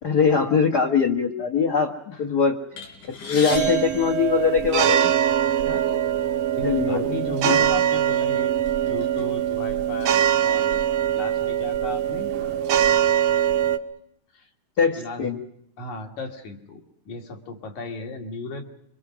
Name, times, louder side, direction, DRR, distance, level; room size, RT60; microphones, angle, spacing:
voice 1, 0.0-5.1 6.6-7.6 14.8-15.4, left 6 dB, 40° left, 1 dB, 1.6 m, -22 dB
sound 1, 2.8-5.1 5.9-6.1 6.4-6.6 7.4-7.6 8.1-9.2, left 3 dB, 85° left, 5.5 m, -37 dB
sound 2, 3.5-13.8, right 10 dB, 65° right, 1.9 m, -22 dB
voice 2, 5.6-6.0 6.5-13.0 14.3-14.5 15.0-15.3 15.8-18.6, left 3 dB, 70° left, 4 dB, 3.7 m, -36 dB
26.5 x 24.0 x 6.2 m, 0.73 s
omnidirectional pair, 3.6 m